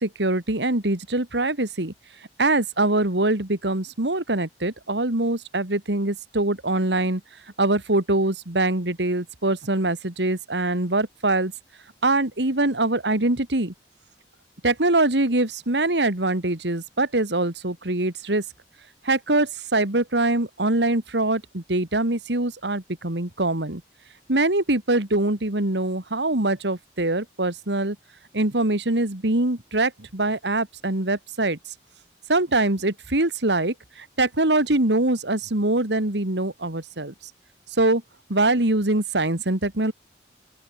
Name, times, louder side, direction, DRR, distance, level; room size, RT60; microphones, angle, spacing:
voice 1, 0.0-1.9 2.4-7.2 7.6-11.5 12.0-13.7 14.6-18.4 19.0-23.8 24.3-28.0 28.3-31.6 32.3-37.3 37.8-38.0 38.3-39.9, right 2 dB, 80° right, 2.7 m, -23 dB
open air
head